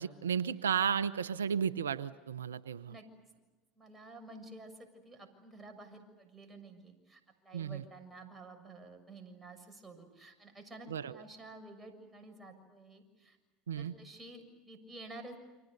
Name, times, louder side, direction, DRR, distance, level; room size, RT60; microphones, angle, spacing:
voice 1, 0.0-3.0 7.5-7.8 10.9-11.2 13.7-13.9, right 7 dB, 90° right, 15 dB, 0.7 m, -33 dB
voice 2, 3.7-13.4 13.8-15.4, right 2 dB, 15° right, 5 dB, 6.8 m, -51 dB
30.0 x 25.5 x 6.7 m, 1.2 s
hypercardioid pair, 80°, 0 cm